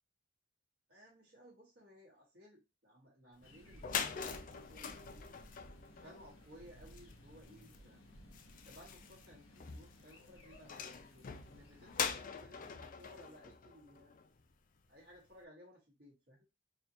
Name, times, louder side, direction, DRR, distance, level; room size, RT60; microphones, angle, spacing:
voice 1, 0.9-5.4 6.0-8.0 8.6-14.1 14.9-16.4, equal, 55° right, -6 dB, 1.4 m, -59 dB
sound 1, 3.4-12.0, equal, 85° left, 1.0 m, -59 dB
sound 2, 3.4-3.5 3.7-14.5, left 6 dB, 45° left, 0.4 m, -44 dB
4.1 x 2.7 x 2.8 m, 0.24 s
head